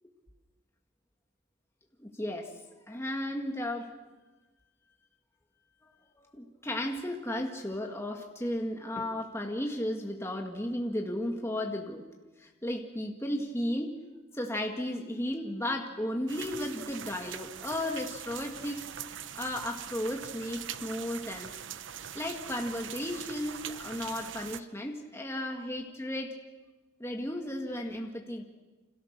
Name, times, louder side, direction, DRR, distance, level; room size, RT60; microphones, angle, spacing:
voice 1, 2.0-2.5 2.9-3.9 5.8-12.0 12.4-14.0 14.3-18.9 19.3-21.5 22.1-26.4 27.0-28.4, left 1 dB, 15° left, 2 dB, 2.0 m, -34 dB
sound 1, 16.3-24.6, right 9 dB, 70° right, 0.9 m, -42 dB
29.5 x 26.5 x 6.7 m, 1.2 s
head